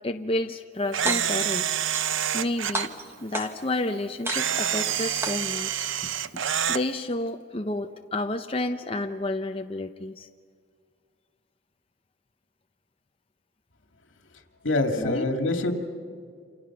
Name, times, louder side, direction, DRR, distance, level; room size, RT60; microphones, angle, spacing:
voice 1, 0.0-1.7 2.3-6.4 6.7-10.3 15.0-15.3, left 2 dB, 30° left, 5 dB, 0.7 m, -30 dB
sound 1, 0.9-1.5 1.9-2.5 2.7-3.8 4.2-4.8 5.2-5.8, right 1 dB, 15° right, 1.4 m, -33 dB
Camera, 0.9-2.9 4.3-6.8, right 9 dB, 80° right, 0.7 m, -27 dB
voice 2, 14.6-15.7, left 2 dB, 85° left, 4 dB, 2.4 m, -25 dB
29.0 x 27.0 x 6.1 m, 2.1 s
head